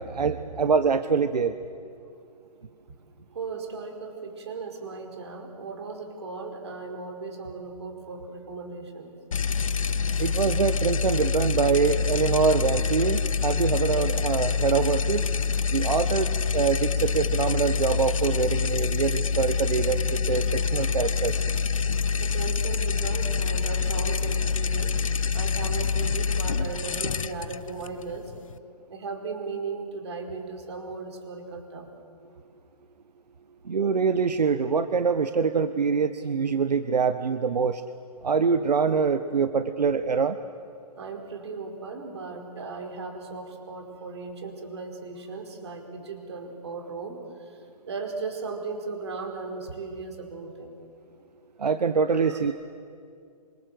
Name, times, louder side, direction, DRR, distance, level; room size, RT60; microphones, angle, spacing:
voice 1, 0.0-1.5 10.2-15.2 15.7-21.4 33.7-37.8 38.2-40.4 51.6-52.5, right 5 dB, 75° right, 9 dB, 1.3 m, -24 dB
voice 2, 3.3-9.1 20.9-21.0 22.2-25.0 25.3-28.3 28.9-31.9 32.3-32.4 41.0-47.6 47.9-50.8 52.1-52.5, right 4 dB, 40° right, 2 dB, 5.0 m, -37 dB
sound 1, 9.3-28.6, left 5 dB, 50° left, 0.9 m, -26 dB
26.5 x 26.5 x 8.0 m, 2.4 s
hypercardioid pair, 175°, 21 cm